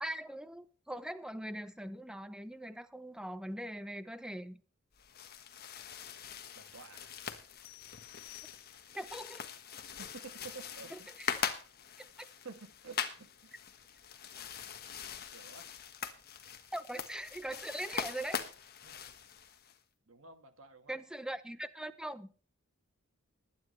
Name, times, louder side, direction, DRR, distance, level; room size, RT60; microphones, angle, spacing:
voice 1, 0.0-4.6 8.9-9.5 10.9-11.4 12.0-12.1 16.7-18.4 20.9-22.3, right 1 dB, 5° right, 13 dB, 0.7 m, -41 dB
sound 1, 4.9-19.8, left 7 dB, 45° left, 1.4 m, -42 dB
voice 2, 6.6-7.3 10.0-11.1 12.0-12.1 12.4-13.5 15.2-15.7 18.8-19.1 20.1-21.0, right 4 dB, 70° right, 8 dB, 1.7 m, -51 dB
sound 2, 7.6-9.1, left 20 dB, 70° left, 1.9 m, -55 dB
20.5 x 9.6 x 3.3 m, 0.38 s
head